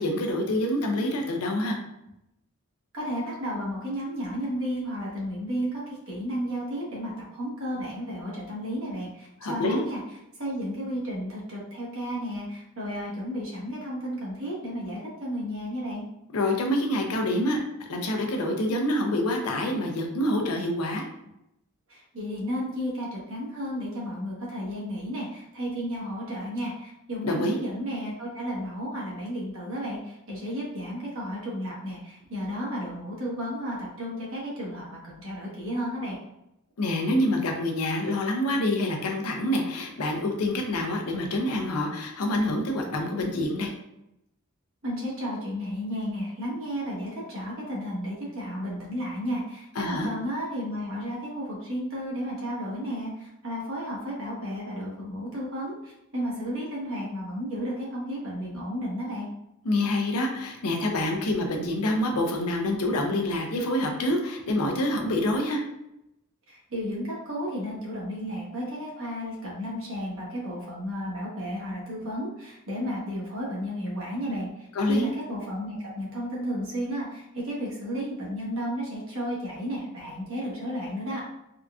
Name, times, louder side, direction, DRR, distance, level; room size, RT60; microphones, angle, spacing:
voice 1, 0.0-1.8 9.4-9.8 16.3-17.6 17.9-21.1 27.2-27.6 36.8-43.7 49.8-50.1 59.6-65.6 74.7-75.1, left 1 dB, 80° left, 3 dB, 0.5 m, -26 dB
voice 2, 2.9-10.0 10.4-16.0 21.9-36.2 44.8-59.3 66.5-81.2, equal, 65° right, -5 dB, 1.1 m, -33 dB
3.7 x 2.3 x 2.4 m, 0.86 s
head